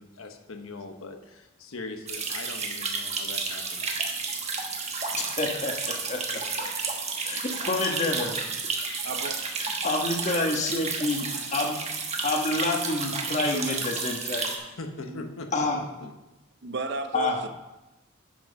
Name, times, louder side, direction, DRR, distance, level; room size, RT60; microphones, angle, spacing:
voice 1, 0.0-3.9 14.5-15.5, left 3 dB, 85° left, 1.1 m, -41 dB
sound 1, 2.1-14.6, right 4 dB, 30° right, 1.3 m, -31 dB
voice 2, 5.1-5.7 6.1-6.7 7.2-8.4 9.6-14.5 15.5-15.8 17.1-17.4, left 2 dB, 35° left, 1.4 m, -28 dB
voice 3, 9.0-9.5 11.3-11.4 12.4-12.5 13.3-13.4 14.2-14.3 15.0-15.3 16.0-16.1 16.6-17.5, right 2 dB, 55° right, 0.7 m, -35 dB
10.0 x 6.1 x 5.4 m
head